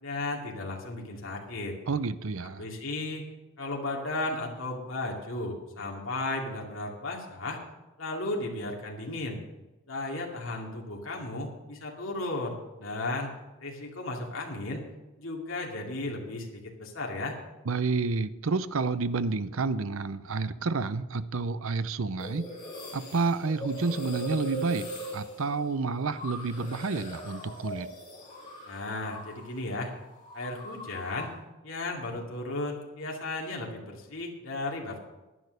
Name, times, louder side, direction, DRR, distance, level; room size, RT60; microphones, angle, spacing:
voice 1, 0.0-1.8 2.6-3.2 3.6-7.6 8.0-9.4 9.9-13.3 13.6-14.8 15.2-17.4 28.7-29.9 30.3-31.3 31.6-35.0, left 2 dB, 60° left, -1 dB, 2.5 m, -35 dB
voice 2, 1.9-2.7 17.7-22.4 22.9-24.9 25.1-27.9, right 4 dB, 65° right, 14 dB, 0.6 m, -29 dB
sound 1, 22.2-29.6 29.8-31.4, equal, 20° left, 4.8 m, -40 dB
11.0 x 10.5 x 6.5 m, 1.1 s
head